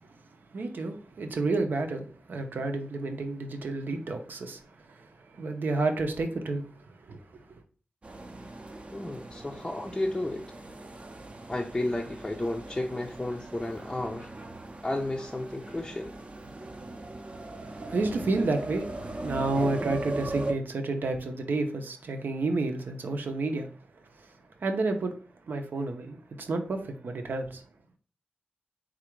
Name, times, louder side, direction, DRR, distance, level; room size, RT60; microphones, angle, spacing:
voice 1, 0.5-7.5 17.4-23.7 24.1-24.3 24.6-27.6, right 3 dB, 75° right, 0.7 m, -31 dB
sound 1, 8.0-20.5, right 2 dB, 40° right, 0.6 m, -39 dB
voice 2, 8.9-10.4 11.5-14.3 14.8-16.2, left 1 dB, 20° left, 0.5 m, -32 dB
4.0 x 2.5 x 4.5 m
wide cardioid pair, 110°, 3 cm